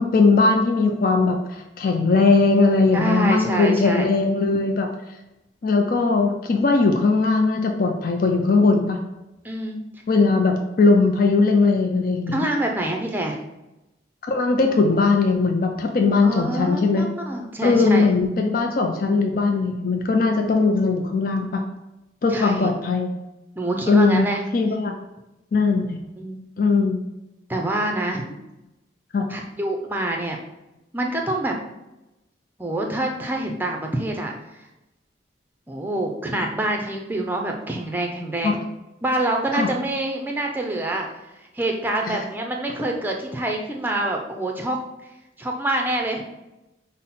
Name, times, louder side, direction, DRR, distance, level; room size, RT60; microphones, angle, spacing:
voice 1, 0.0-4.9 5.6-9.0 10.1-12.5 14.2-17.1 17.6-21.6 22.2-23.1 23.9-24.3 24.5-24.9 25.5-26.0 26.6-27.0 29.1-29.3 38.4-38.6 39.5-39.7 42.1-42.3, left 3 dB, 45° left, 3 dB, 0.4 m, -19 dB
voice 2, 2.9-4.0 9.4-9.8 12.3-13.4 16.2-18.1 22.3-22.7 23.6-24.4 26.2-26.4 27.5-28.3 29.3-30.4 30.9-31.5 32.6-34.3 35.7-38.6 39.0-41.1 41.5-44.8 45.4-46.2, right 1 dB, 10° right, 2 dB, 0.5 m, -26 dB
5.4 x 2.1 x 4.1 m, 0.95 s
head